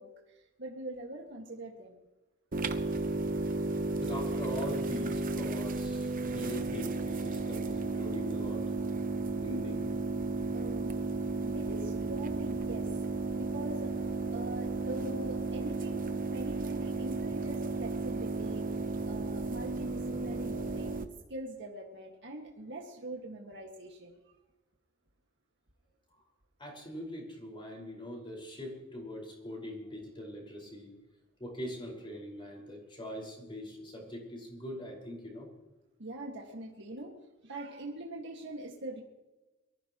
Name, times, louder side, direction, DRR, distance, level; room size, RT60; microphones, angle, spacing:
voice 1, 0.0-2.0 9.3-9.7 10.5-10.9 11.4-12.9 13.3-13.9 14.3-18.6 19.0-21.0 21.3-24.3 36.0-37.2 37.4-39.0, right 1 dB, 60° right, -1 dB, 2.0 m, -43 dB
sound 1, 2.5-21.1, right 3 dB, 40° right, 1.0 m, -33 dB
voice 2, 4.0-8.7 9.4-9.8 26.1-26.2 26.6-30.9 31.4-35.5, equal, 25° left, -1 dB, 5.2 m, -42 dB
23.5 x 15.0 x 3.1 m, 1.1 s
head